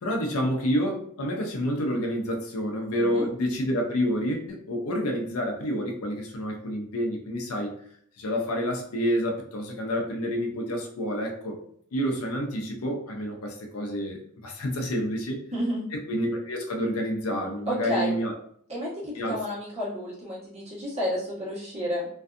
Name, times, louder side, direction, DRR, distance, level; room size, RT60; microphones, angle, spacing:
voice 1, 0.0-7.7 8.2-11.6 11.9-15.4 15.9-18.3 19.1-19.4, equal, 75° left, 2 dB, 0.5 m, -28 dB
voice 2, 2.9-3.3 15.5-15.8 17.7-18.1 18.7-22.1, equal, 30° right, -6 dB, 1.0 m, -31 dB
2.5 x 2.3 x 2.4 m, 0.65 s
head